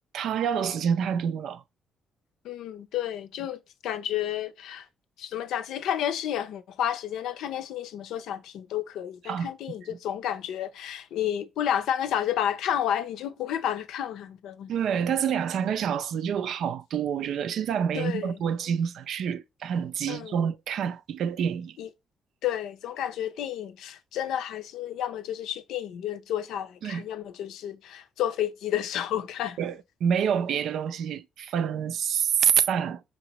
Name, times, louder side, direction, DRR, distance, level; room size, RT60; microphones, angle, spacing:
voice 1, 0.1-1.6 9.2-9.5 14.7-21.8 26.8-27.0 29.6-33.0, right 8 dB, 75° right, 0.4 m, -27 dB
voice 2, 2.4-4.9 5.2-14.7 17.9-18.4 20.1-20.4 21.8-21.9 22.4-29.6, left 10 dB, 85° left, 0.5 m, -31 dB
5.1 x 2.9 x 2.9 m
cardioid pair, 90°, 0 cm